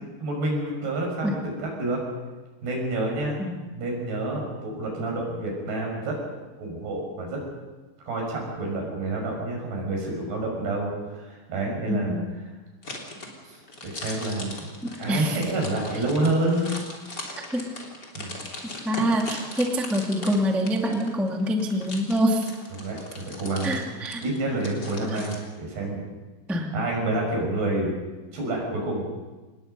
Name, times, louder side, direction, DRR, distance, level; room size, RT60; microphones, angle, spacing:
voice 1, 0.2-2.0 2.6-3.4 3.7-6.2 6.6-7.4 8.0-12.2 13.4-14.7 15.0-16.7 18.2-18.3 22.8-23.8 24.2-26.0 26.7-28.0 28.3-29.1, right 2 dB, 70° right, 0 dB, 8.1 m, -28 dB
voice 2, 11.9-12.2 15.1-15.4 17.5-17.6 18.8-22.5 23.6-24.2 25.1-25.2 26.5-26.7, equal, ahead, 1 dB, 0.8 m, -25 dB
sound 1, 12.8-25.4, left 2 dB, 25° left, 3.4 m, -39 dB
26.5 x 20.0 x 5.5 m, 1.2 s
omnidirectional pair, 4.8 m